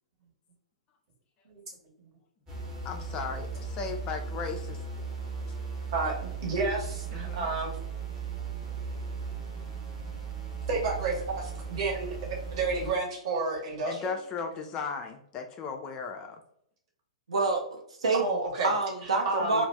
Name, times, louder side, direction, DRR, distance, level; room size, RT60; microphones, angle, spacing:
sound 1, 2.5-12.9, right 5 dB, 20° right, 0.8 m, -37 dB
voice 1, 2.8-4.8 7.1-7.5 13.9-16.4, left 5 dB, 25° left, 4 dB, 0.3 m, -36 dB
voice 2, 5.9-7.8 10.7-12.2 12.5-14.2 18.1-18.7 19.2-19.6, right 3 dB, 45° right, -1 dB, 1.0 m, -31 dB
voice 3, 17.3-18.2 18.6-19.7, right 3 dB, 65° right, 1 dB, 0.7 m, -27 dB
2.4 x 2.0 x 3.2 m, 0.67 s
figure-of-eight pair, 110°, 4 cm